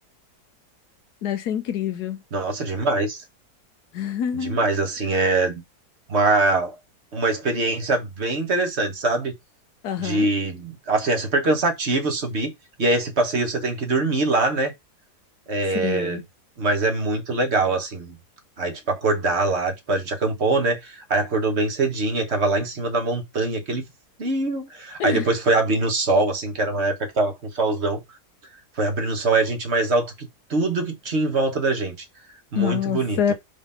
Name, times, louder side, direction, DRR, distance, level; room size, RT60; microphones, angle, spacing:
voice 1, 1.2-2.2 3.9-4.6 9.8-10.3 15.7-16.2 25.0-25.2 32.6-33.3, left 8 dB, 80° left, 1.5 m, -26 dB
voice 2, 2.3-3.2 4.3-5.6 6.1-6.8 7.1-9.3 10.0-12.5 12.8-14.7 15.5-16.2 16.6-18.2 18.6-23.8 24.2-28.0 28.8-32.0 32.5-33.3, right 2 dB, 45° right, 1.6 m, -23 dB
5.0 x 3.6 x 5.6 m
omnidirectional pair, 1.7 m